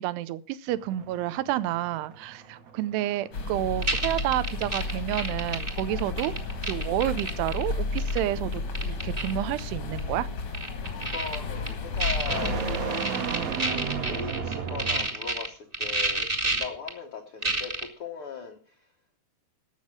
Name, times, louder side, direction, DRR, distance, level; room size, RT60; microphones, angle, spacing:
voice 1, 0.0-6.4 6.7-10.3, right 14 dB, 90° right, 2.8 m, -30 dB
sound 1, 0.7-15.3, right 6 dB, 60° right, 1.8 m, -37 dB
sound 2, 3.3-12.9, left 3 dB, 55° left, 1.5 m, -33 dB
sound 3, 3.8-7.6 8.0-8.2 8.5-9.3 9.6-9.7 10.0-10.1 10.5-11.4 11.7-11.8 12.0-15.5 15.7-16.9 17.4-17.8, right 2 dB, 25° right, 1.1 m, -29 dB
voice 2, 11.0-13.2 14.1-18.8, left 6 dB, 80° left, 1.2 m, -38 dB
13.0 x 7.3 x 6.2 m
omnidirectional pair, 4.6 m